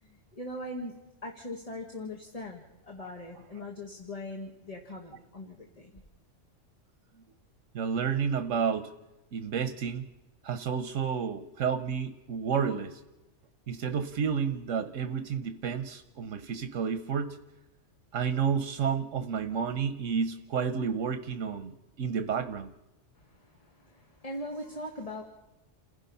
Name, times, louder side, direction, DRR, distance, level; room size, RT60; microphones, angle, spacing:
voice 1, 0.0-1.0 1.2-5.9 23.2-25.2, left 1 dB, 30° left, 1 dB, 1.9 m, -41 dB
voice 2, 7.7-8.9 9.3-10.1 10.4-13.0 13.7-17.4 18.1-22.7, right 6 dB, 85° right, 8 dB, 1.2 m, -31 dB
29.5 x 16.0 x 5.5 m, 0.99 s
omnidirectional pair, 1.3 m